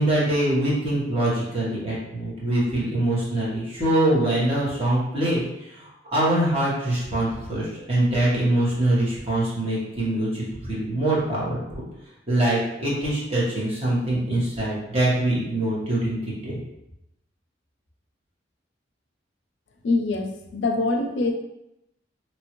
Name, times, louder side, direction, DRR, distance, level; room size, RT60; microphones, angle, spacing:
voice 1, 0.0-11.8 12.3-16.6, right 1 dB, 35° right, -7 dB, 1.1 m, -24 dB
voice 2, 19.8-21.3, left 3 dB, 75° left, 4 dB, 0.4 m, -24 dB
3.0 x 2.6 x 3.0 m, 0.88 s
head